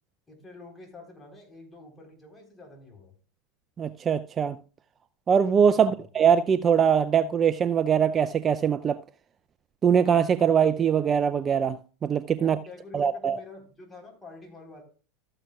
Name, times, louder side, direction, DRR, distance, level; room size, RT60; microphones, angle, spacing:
voice 1, 0.3-3.2 5.7-6.0 12.4-14.8, left 2 dB, 15° left, 3.8 m, -47 dB
voice 2, 3.8-4.6 5.3-9.0 9.8-12.6 12.9-13.4, right 7 dB, 30° right, 0.4 m, -22 dB
13.5 x 8.8 x 2.3 m
hypercardioid pair, 90°, 0 cm